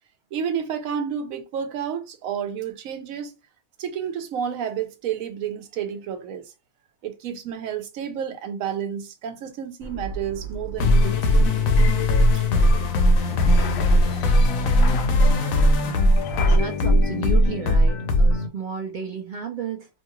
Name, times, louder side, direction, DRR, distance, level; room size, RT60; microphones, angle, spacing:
voice 1, 0.3-3.3 3.8-6.4 7.0-11.5 12.3-12.4, right 8 dB, 85° right, 1.0 m, -30 dB
sound 1, 9.8-16.6, equal, 65° left, 0.7 m, -33 dB
sound 2, 10.8-18.5, left 1 dB, 85° left, 1.0 m, -19 dB
voice 2, 16.5-19.9, right 6 dB, 70° right, 0.4 m, -32 dB
2.9 x 2.7 x 2.3 m
omnidirectional pair, 1.4 m